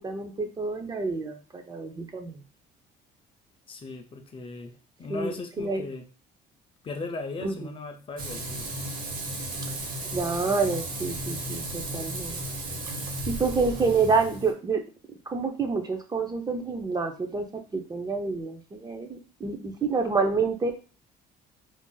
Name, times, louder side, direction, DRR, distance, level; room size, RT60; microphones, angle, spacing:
voice 1, 0.0-2.4 5.1-5.9 7.4-7.5 10.1-12.4 13.3-14.8 15.3-17.5 17.7-20.8, right 4 dB, 25° right, 5 dB, 0.5 m, -28 dB
voice 2, 3.7-4.7 5.0-6.0 6.8-8.7, left 3 dB, 30° left, 5 dB, 0.5 m, -38 dB
Frying (food), 8.2-14.5, right 1 dB, 60° right, 0.9 m, -34 dB
2.5 x 2.0 x 3.8 m, 0.35 s
cardioid pair, 110°, 17 cm